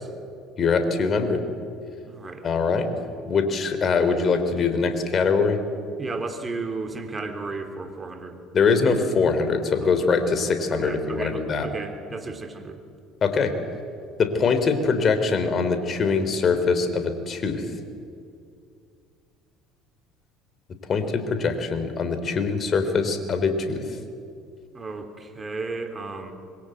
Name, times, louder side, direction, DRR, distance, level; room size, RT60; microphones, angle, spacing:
voice 1, 0.6-1.4 2.4-2.9 3.3-5.6 8.5-11.7 13.2-13.5 14.2-17.7 20.9-23.8, left 4 dB, 40° left, 9 dB, 3.8 m, -23 dB
voice 2, 2.0-2.4 6.0-8.4 9.8-9.9 10.7-12.8 24.7-26.3, right 3 dB, 25° right, 6 dB, 3.7 m, -34 dB
26.0 x 23.0 x 8.1 m, 2.4 s
hypercardioid pair, 65°, 0 cm